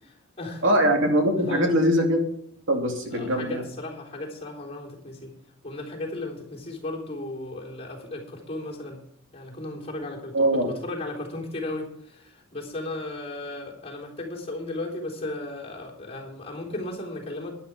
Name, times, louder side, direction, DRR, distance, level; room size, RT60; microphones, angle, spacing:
voice 1, 0.0-0.7 1.4-1.7 3.1-5.3 5.6-9.0 9.3-17.5, left 2 dB, 30° left, -2 dB, 3.7 m, -35 dB
voice 2, 0.6-2.2 2.7-3.6 10.3-10.7, equal, 60° right, 2 dB, 2.7 m, -22 dB
12.0 x 11.0 x 5.1 m, 0.66 s
head